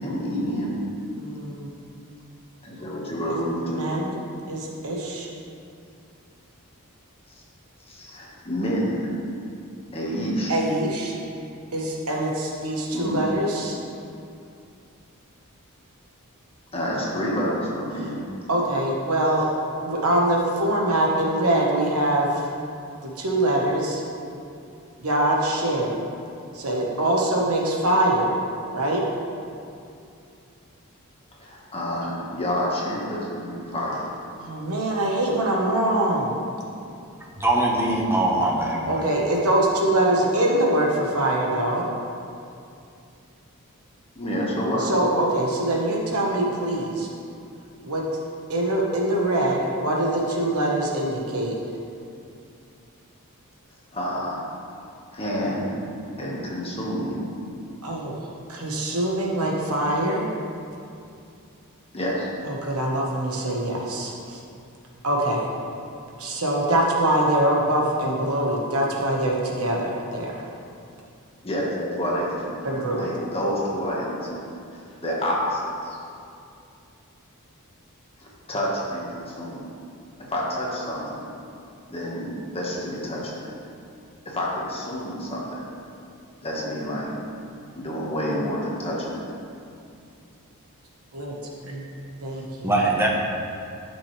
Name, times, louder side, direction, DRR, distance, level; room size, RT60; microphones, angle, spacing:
voice 1, 0.0-0.8 2.6-3.8 7.9-9.1 9.9-10.6 12.9-13.2 16.7-18.2 31.4-34.0 44.1-44.8 53.9-54.4 55.1-55.8 56.2-57.2 61.9-62.3 71.4-74.4 74.7-76.0 78.2-79.7 80.2-81.3 81.9-83.5 84.2-85.6 86.4-87.1 87.8-89.1, equal, 25° left, -4 dB, 1.5 m, -28 dB
voice 2, 1.1-1.7 3.3-3.4 3.7-4.2 4.5-5.3 10.5-11.1 11.7-13.8 18.5-19.5 19.8-22.5 23.0-24.0 25.0-26.0 26.5-28.3 28.7-29.0 34.4-36.3 38.9-41.9 44.8-47.1 47.8-48.0 48.5-51.6 57.8-58.1 58.5-60.3 62.4-64.4 65.0-65.5 66.2-70.5 72.6-73.1 91.1-91.4 91.6-91.9 92.2-92.8, right 1 dB, 70° right, -2 dB, 1.4 m, -23 dB
voice 3, 37.4-39.1 92.6-93.1, right 2 dB, 10° right, -3 dB, 1.1 m, -22 dB
12.0 x 6.2 x 3.3 m, 2.5 s
head